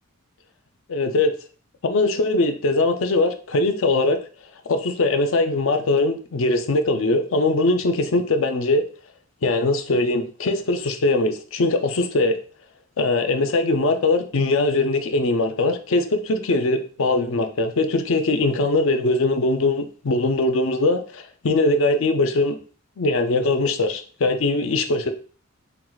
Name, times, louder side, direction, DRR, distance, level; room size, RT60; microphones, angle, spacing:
voice 1, 0.9-1.3 1.8-4.2 4.7-8.8 9.4-12.4 13.0-22.6 23.0-25.1, left 2 dB, 65° left, 8 dB, 0.5 m, -21 dB
4.4 x 2.3 x 3.9 m, 0.40 s
head